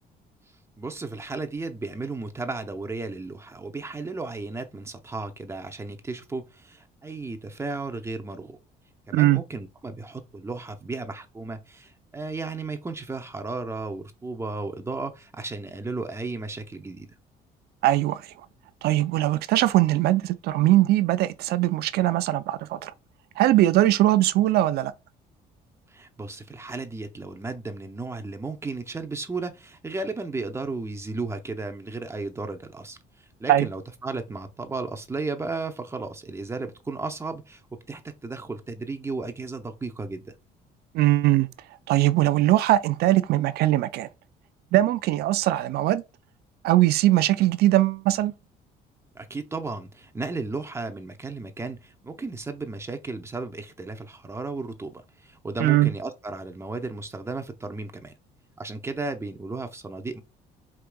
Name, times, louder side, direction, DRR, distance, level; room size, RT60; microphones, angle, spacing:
voice 1, 0.8-8.6 9.1-17.1 25.9-33.0 33.4-37.6 37.9-40.3 49.1-58.1 58.6-60.2, right 3 dB, 15° right, 0.6 m, -34 dB
voice 2, 17.8-18.2 18.8-22.9 23.4-24.9 33.5-33.7 40.9-41.5 41.9-44.1 44.7-46.0 46.6-48.3 55.6-55.9, right 15 dB, 70° right, 0.4 m, -21 dB
4.7 x 2.8 x 2.2 m
cardioid pair, 110°, 17 cm